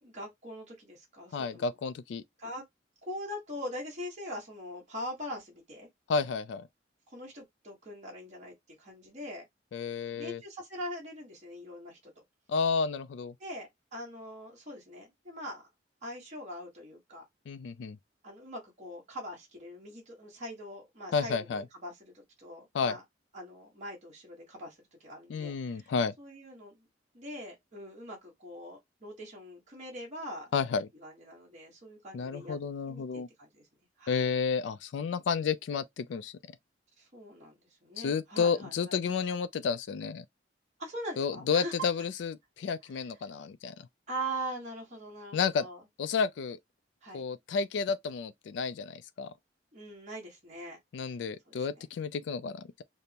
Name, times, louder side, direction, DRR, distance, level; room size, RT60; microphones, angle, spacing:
voice 1, 0.0-1.7 2.4-2.6 3.1-5.9 7.1-9.5 10.1-12.1 13.4-15.7 16.0-17.2 18.2-23.0 23.3-26.8 27.1-30.5 31.0-32.6 32.9-33.7 34.0-34.2 37.0-37.5 37.8-38.9 40.8-41.9 42.9-43.0 44.1-45.8 47.0-47.2 49.7-50.8 51.5-51.8, equal, 40° right, 1.3 m, -42 dB
voice 2, 1.3-2.2 6.1-6.7 9.7-10.4 12.5-13.3 17.5-18.0 21.1-21.6 22.7-22.9 25.3-26.1 30.5-30.9 32.1-33.3 34.1-36.3 38.0-40.2 41.2-43.9 45.3-45.7 46.0-46.6 47.1-49.3 50.9-52.6, left 5 dB, 70° left, 0.3 m, -31 dB
5.1 x 2.0 x 2.8 m
head